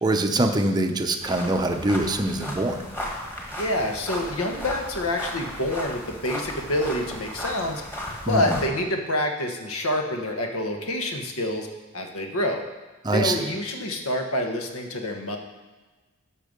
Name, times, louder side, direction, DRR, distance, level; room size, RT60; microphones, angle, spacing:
voice 1, 0.0-2.8 8.3-8.6 13.0-13.5, right 1 dB, 20° right, 4 dB, 0.7 m, -24 dB
sound 1, 1.2-8.7, equal, 10° left, 1.7 m, -35 dB
voice 2, 3.5-7.8 8.3-11.7 11.9-12.6 13.1-15.4, left 1 dB, 70° left, 3 dB, 1.3 m, -27 dB
11.5 x 6.5 x 5.3 m, 1.3 s
head